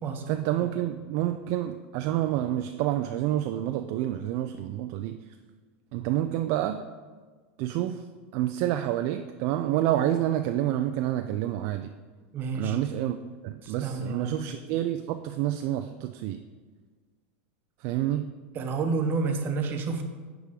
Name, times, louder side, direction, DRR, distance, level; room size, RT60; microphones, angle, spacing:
voice 1, 0.3-5.2 5.9-6.8 7.6-8.0 8.3-11.9 12.5-13.2 13.4-16.4 17.8-18.3, right 13 dB, 50° right, 8 dB, 0.3 m, -28 dB
voice 2, 12.3-12.8 13.6-14.4 18.5-20.0, right 4 dB, 30° right, 6 dB, 0.8 m, -30 dB
9.6 x 3.6 x 4.9 m, 1.5 s
supercardioid pair, 145°, 7 cm